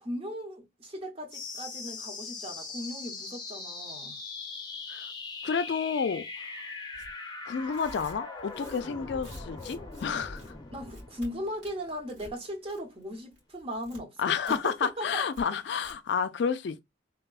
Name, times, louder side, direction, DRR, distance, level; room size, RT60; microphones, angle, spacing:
voice 1, 0.0-4.2 10.7-15.2, equal, 30° right, 0.6 m, -38 dB
sound 1, 1.3-12.3, left 3 dB, 25° left, 0.6 m, -41 dB
voice 2, 5.4-6.2 7.5-10.5 14.2-16.8, left 6 dB, 65° left, 0.3 m, -30 dB
Tearing, 6.9-7.1 7.6-10.1 10.3-10.5 10.8-11.3 11.6-12.3 12.6-13.0 13.3-14.0 14.4-14.6 14.8-14.9 15.3-15.4 15.8-15.9, equal, 70° right, 2.1 m, -49 dB
3.4 x 2.2 x 2.3 m
head